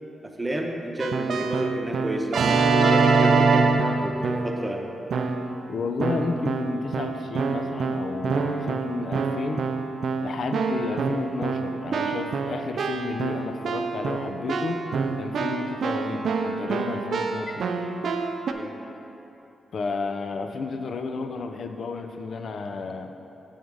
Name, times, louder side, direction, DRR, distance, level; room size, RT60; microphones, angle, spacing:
voice 1, 0.4-2.4 2.7-4.9 18.5-18.7, right 1 dB, 20° right, 1 dB, 0.8 m, -30 dB
Keyboard (musical), 1.0-4.7 5.1-5.6 6.0-18.5, right 4 dB, 70° right, 0.4 m, -25 dB
voice 2, 5.7-9.7 10.2-14.8 15.2-17.7 19.7-23.2, left 4 dB, 70° left, 6 dB, 0.4 m, -32 dB
6.9 x 3.6 x 6.3 m, 3.0 s
cardioid pair, 70°, 0 cm